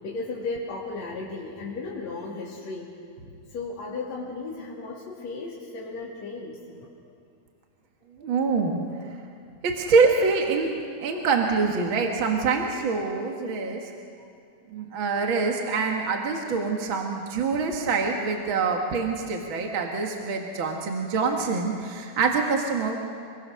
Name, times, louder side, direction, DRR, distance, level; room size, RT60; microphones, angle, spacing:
voice 1, 0.0-2.9 3.5-6.9, left 3 dB, 65° left, -6 dB, 3.7 m, -35 dB
voice 2, 8.2-8.8 9.6-13.9 14.7-23.0, right 4 dB, 45° right, 2 dB, 2.1 m, -25 dB
26.0 x 22.5 x 6.4 m, 2.4 s
omnidirectional pair, 3.5 m